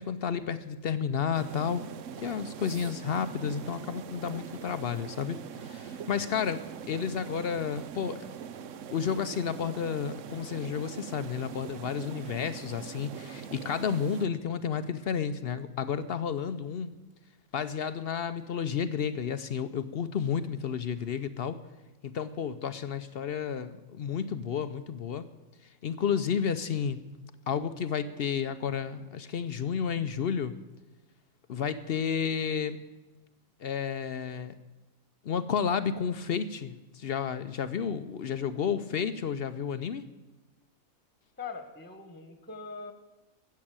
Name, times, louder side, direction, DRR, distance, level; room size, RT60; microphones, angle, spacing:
voice 1, 0.0-1.8 2.2-8.3 8.9-16.9 17.5-21.6 22.0-25.3 25.8-27.0 27.5-30.6 31.5-32.8 33.6-34.6 35.2-40.0, left 7 dB, 60° left, 12 dB, 0.7 m, -31 dB
sound 1, 1.3-14.3, right 8 dB, 65° right, 1.0 m, -42 dB
voice 2, 41.4-42.9, left 4 dB, 10° left, 6 dB, 1.2 m, -41 dB
14.0 x 7.5 x 8.7 m, 1.1 s
omnidirectional pair, 1.4 m